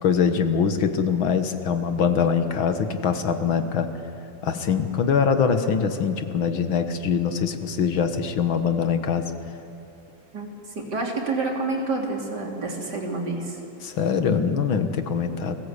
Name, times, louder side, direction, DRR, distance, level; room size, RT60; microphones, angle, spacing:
voice 1, 0.0-3.9 4.4-9.3 13.8-15.6, left 6 dB, 85° left, 8 dB, 2.2 m, -23 dB
voice 2, 10.3-13.6, right 3 dB, 55° right, 0 dB, 3.9 m, -28 dB
30.0 x 20.5 x 8.4 m, 2.7 s
omnidirectional pair, 2.2 m